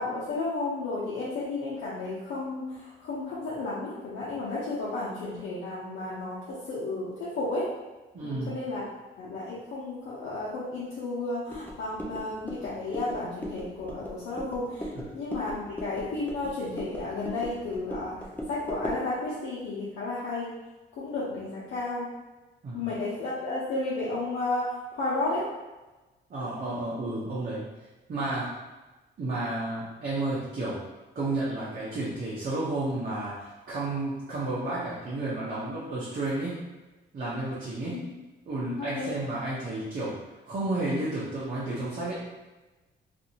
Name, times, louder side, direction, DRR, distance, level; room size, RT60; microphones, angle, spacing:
voice 1, 0.0-7.7 8.2-8.8 9.2-14.9 15.1-20.5 21.0-22.1 22.7-25.5 37.9-38.1 38.7-39.1, left 2 dB, 75° left, -8 dB, 0.8 m, -33 dB
voice 2, 8.1-8.6 14.9-15.0 22.6-22.8 26.3-27.7 28.1-28.5 29.2-30.8 31.1-36.6 37.1-38.0 38.5-40.2 40.5-42.2, right 2 dB, 45° right, -8 dB, 0.8 m, -31 dB
sound 1, 11.5-19.1, equal, 10° left, 0.6 m, -39 dB
2.6 x 2.5 x 2.8 m, 1.1 s
cardioid pair, 90°, 20 cm